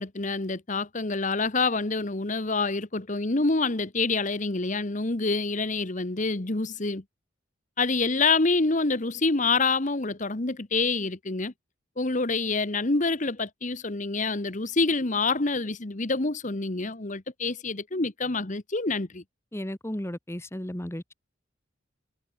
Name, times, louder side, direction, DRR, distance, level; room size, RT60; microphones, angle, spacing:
voice 1, 0.0-7.0 7.8-11.5 12.0-19.2, left 3 dB, 35° left, 1.2 m, -27 dB
voice 2, 19.5-21.1, left 1 dB, 10° left, 1.1 m, -34 dB
head